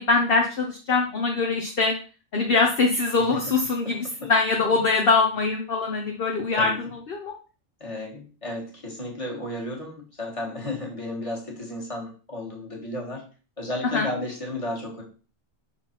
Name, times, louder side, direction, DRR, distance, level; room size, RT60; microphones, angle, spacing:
voice 1, 0.0-1.9 2.3-7.3 13.9-14.1, left 4 dB, 50° left, 1 dB, 1.0 m, -23 dB
voice 2, 3.2-3.5 3.9-4.0 4.2-4.3 4.6-4.7 6.6-6.8 7.8-13.2 13.6-15.0, left 1 dB, 25° left, -2 dB, 1.9 m, -33 dB
5.9 x 4.2 x 4.5 m, 0.36 s
omnidirectional pair, 1.3 m